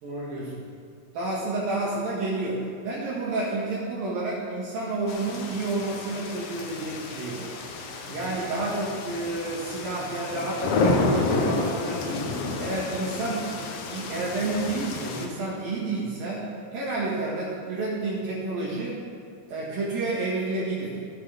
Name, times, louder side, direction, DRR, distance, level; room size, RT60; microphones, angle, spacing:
voice 1, 0.0-0.5 1.1-7.5 8.1-12.3 12.6-13.5 13.9-16.4 16.7-19.0 19.5-21.0, right 2 dB, 65° right, -6 dB, 3.5 m, -30 dB
sound 1, 5.1-15.3, left 3 dB, 80° left, 1.4 m, -30 dB
14.5 x 8.5 x 5.1 m, 2.2 s
omnidirectional pair, 4.4 m